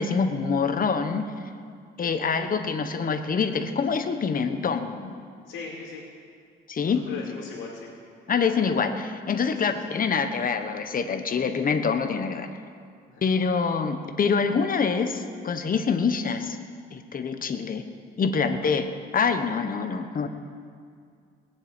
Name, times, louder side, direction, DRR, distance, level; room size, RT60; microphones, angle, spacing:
voice 1, 0.0-1.3 2.0-5.1 6.7-7.0 8.3-12.5 13.2-16.6 16.9-17.8 18.2-18.9 19.1-20.3, left 5 dB, 45° left, 8 dB, 1.3 m, -25 dB
voice 2, 5.4-6.0 6.8-7.9 9.5-9.9 13.1-13.2 18.4-18.5, left 5 dB, 90° left, -5 dB, 2.6 m, -40 dB
19.0 x 7.8 x 9.0 m, 2.2 s
cardioid pair, 90°, 20 cm